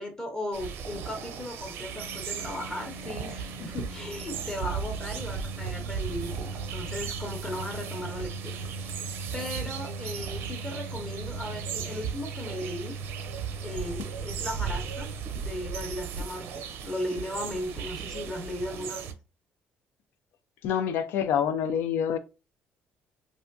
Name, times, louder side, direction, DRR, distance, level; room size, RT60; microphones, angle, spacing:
voice 1, 0.0-8.9 9.3-13.0 13.6-15.1 15.3-19.1, left 1 dB, 20° left, 0.7 m, -37 dB
sound 1, 0.5-19.1, right 7 dB, 85° right, 0.6 m, -37 dB
Organ, 1.8-12.6, left 1 dB, 60° left, 0.8 m, -45 dB
sound 2, 5.2-15.2, right 4 dB, 40° right, 0.4 m, -40 dB
voice 2, 20.6-22.2, left 8 dB, 80° left, 0.4 m, -26 dB
3.4 x 2.5 x 2.6 m
cardioid pair, 130°, 4 cm